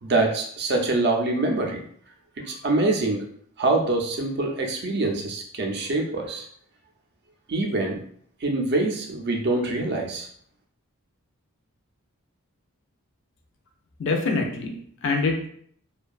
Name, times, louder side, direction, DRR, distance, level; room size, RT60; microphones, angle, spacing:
voice 1, 0.0-1.8 2.4-3.2 3.6-6.4 7.5-8.0 8.4-10.3, right 2 dB, 45° right, 2 dB, 0.4 m, -25 dB
voice 2, 14.0-15.5, left 3 dB, 55° left, 2 dB, 0.4 m, -25 dB
2.6 x 2.2 x 2.3 m, 0.62 s
head